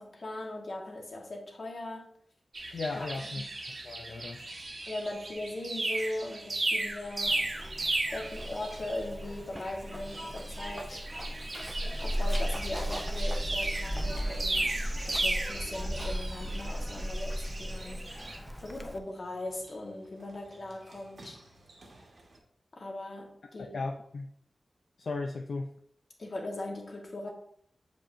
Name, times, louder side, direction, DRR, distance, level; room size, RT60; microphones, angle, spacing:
voice 1, 0.0-2.1 2.9-3.1 3.4-3.5 4.9-7.5 8.0-11.1 12.0-18.2 18.6-21.4 22.7-23.8 26.2-27.3, left 1 dB, 55° left, 1.3 m, -39 dB
sound 1, 2.5-9.2 9.5-18.4, right 2 dB, 50° right, 1.0 m, -36 dB
voice 2, 2.7-3.4 3.8-4.4 23.6-24.3 25.0-25.7, left 3 dB, 80° left, 0.4 m, -36 dB
Zipper (clothing), 7.3-19.0, equal, 5° left, 0.5 m, -36 dB
sound 2, 17.1-22.4, right 2 dB, 75° right, 1.4 m, -58 dB
7.1 x 5.1 x 2.6 m
wide cardioid pair, 85°, 0 cm